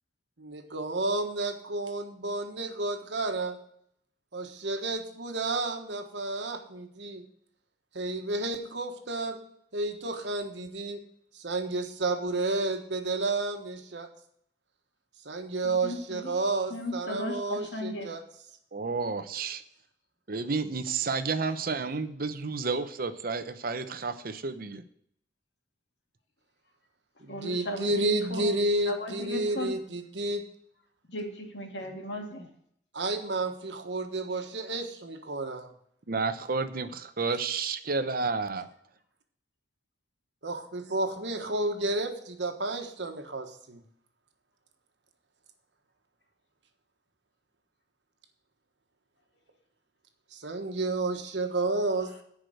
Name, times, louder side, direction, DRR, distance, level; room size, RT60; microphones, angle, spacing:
voice 1, 0.4-3.6 4.3-7.2 7.9-9.4 9.7-11.0 11.3-14.1 15.2-18.2 27.2-30.4 32.9-35.7 40.4-43.8 50.3-52.2, right 2 dB, 85° right, 5 dB, 1.4 m, -31 dB
voice 2, 15.8-16.3 16.7-18.1 27.3-28.5 28.9-29.7 31.1-32.5, equal, 80° left, 2 dB, 2.2 m, -36 dB
voice 3, 18.7-19.6 20.3-24.8 36.1-38.7, right 4 dB, 55° right, 10 dB, 0.8 m, -31 dB
10.5 x 5.0 x 7.9 m, 0.69 s
head